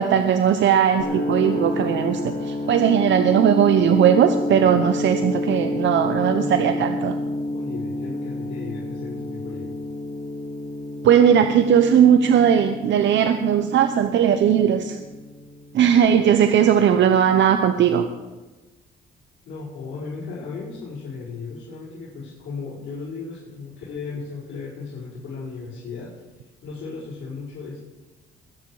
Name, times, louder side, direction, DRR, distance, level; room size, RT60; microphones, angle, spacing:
voice 1, 0.0-7.1 11.0-15.0 15.7-18.1, right 8 dB, 70° right, 7 dB, 0.9 m, -18 dB
sound 1, 1.0-16.9, left 1 dB, 45° left, 3.2 m, -29 dB
voice 2, 6.3-9.7 19.5-27.8, left 4 dB, 75° left, -9 dB, 5.2 m, -36 dB
22.0 x 9.5 x 4.9 m, 1.2 s
cardioid pair, 90°, 20 cm